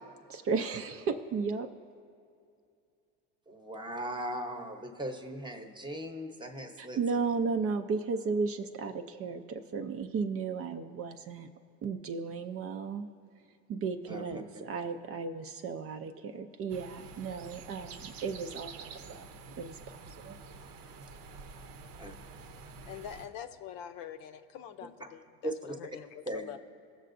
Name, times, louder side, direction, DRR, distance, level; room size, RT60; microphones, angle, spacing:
voice 1, 0.3-1.7 6.8-11.5 11.8-13.1 13.7-19.3 19.6-20.4, right 5 dB, 40° right, 7 dB, 0.5 m, -34 dB
voice 2, 3.5-7.0 14.1-14.7 22.0-22.1 25.4-25.7 26.3-26.5, right 1 dB, 10° right, 4 dB, 0.9 m, -38 dB
sound 1, 16.7-23.3, right 4 dB, 60° right, 0.8 m, -48 dB
voice 3, 22.8-26.6, left 9 dB, 65° left, 9 dB, 0.7 m, -44 dB
17.0 x 6.6 x 2.6 m, 2.4 s
supercardioid pair, 100°, 38 cm